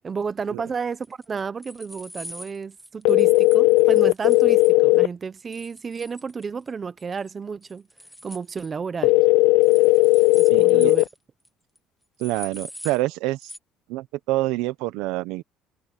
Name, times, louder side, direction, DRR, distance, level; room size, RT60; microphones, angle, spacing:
voice 1, 0.0-7.9 8.2-9.2 10.3-11.0, right 5 dB, 25° right, 0.9 m, -32 dB
sound 1, 1.0-4.7 5.5-6.7 7.0-7.3 7.6-8.7 9.6-11.2 11.4-11.5 11.7-11.8 12.2-13.0 13.4-13.6, equal, ahead, 1.3 m, -43 dB
sound 2, 3.0-5.1 9.0-11.0, left 23 dB, 90° left, 0.3 m, -16 dB
voice 2, 10.5-10.9 12.2-13.5 13.9-15.4, right 18 dB, 80° right, 1.0 m, -27 dB
cardioid pair, 150°, 0 cm